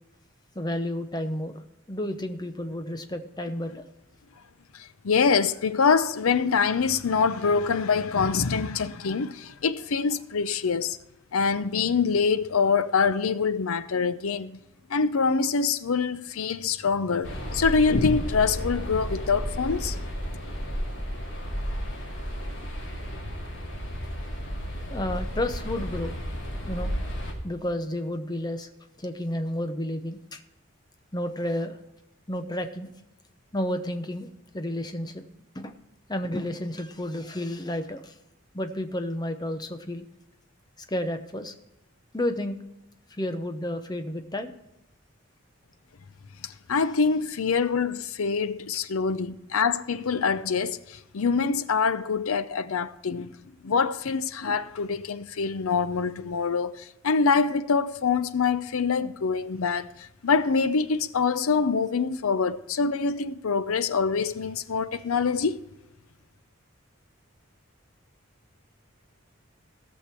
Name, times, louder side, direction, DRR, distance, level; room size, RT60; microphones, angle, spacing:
voice 1, 0.5-1.6 1.9-3.8 24.9-26.1 26.7-26.9 27.4-28.7 29.0-30.4 31.1-31.8 32.3-32.9 33.5-35.2 35.5-35.8 36.1-38.1 38.5-40.0 40.8-41.5 42.1-42.6 43.2-44.5, left 1 dB, 20° left, 0.8 m, -31 dB
voice 2, 4.7-11.0 11.3-14.6 14.9-20.0 46.4-53.4 53.6-65.6, left 5 dB, 80° left, 0.6 m, -25 dB
sound 1, 17.2-27.3, equal, 60° left, 2.3 m, -33 dB
17.0 x 6.5 x 4.5 m
head